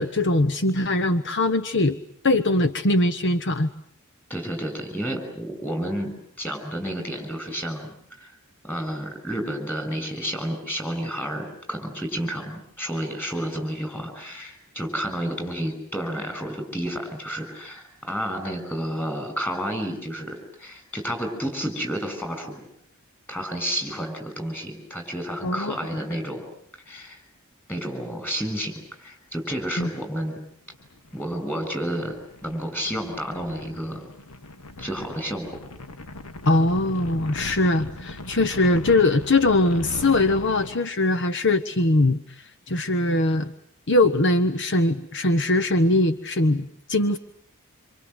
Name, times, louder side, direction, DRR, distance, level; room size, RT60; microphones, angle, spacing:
voice 1, 0.0-2.0 2.2-3.7 25.4-25.8 29.8-29.9 36.4-42.2 42.7-43.5 43.9-47.2, left 2 dB, 55° left, 10 dB, 1.2 m, -21 dB
voice 2, 4.3-8.4 8.6-22.6 23.3-26.5 26.7-27.2 27.7-30.4 31.1-34.0 34.8-35.6, equal, 10° left, 6 dB, 6.7 m, -31 dB
sound 1, 30.7-40.8, left 2 dB, 75° left, 1.5 m, -40 dB
27.5 x 27.0 x 8.0 m, 0.66 s
head